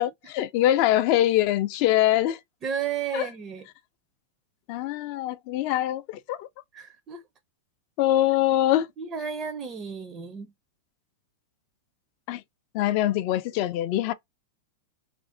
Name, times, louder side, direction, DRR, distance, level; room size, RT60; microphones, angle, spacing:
voice 1, 0.0-2.4 3.1-3.3 4.7-6.5 8.0-8.9 12.3-12.4 12.7-14.1, left 13 dB, 50° left, 0.3 m, -23 dB
voice 2, 2.6-3.7 6.7-7.2 9.0-10.5, right 7 dB, 25° right, 0.4 m, -33 dB
2.4 x 2.1 x 2.4 m
supercardioid pair, 135°, 0 cm